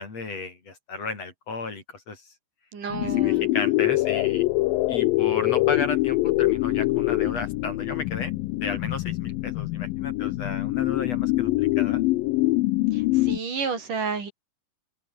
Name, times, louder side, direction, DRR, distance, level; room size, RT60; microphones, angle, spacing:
voice 1, 0.0-2.3 3.0-4.4 4.9-8.3 8.6-12.0, left 4 dB, 45° left, 5.7 m, -34 dB
voice 2, 2.7-3.5 12.9-14.3, right 5 dB, 65° right, 5.9 m, -31 dB
sound 1, 2.9-13.4, left 19 dB, 85° left, 2.5 m, -24 dB
omnidirectional pair, 4.0 m